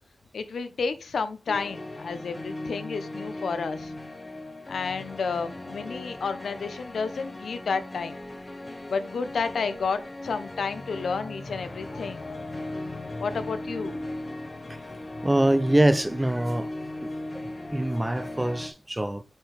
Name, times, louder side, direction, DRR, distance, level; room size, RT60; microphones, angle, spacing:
voice 1, 0.3-3.9 4.7-8.2 8.9-12.4 13.2-14.0, left 5 dB, 75° left, 0.9 m, -31 dB
sound 1, 1.5-18.7, left 2 dB, 25° left, 1.0 m, -38 dB
voice 2, 15.2-16.7 17.0-19.2, right 1 dB, 10° right, 0.5 m, -24 dB
9.4 x 4.7 x 3.3 m
wide cardioid pair, 180°, 0 cm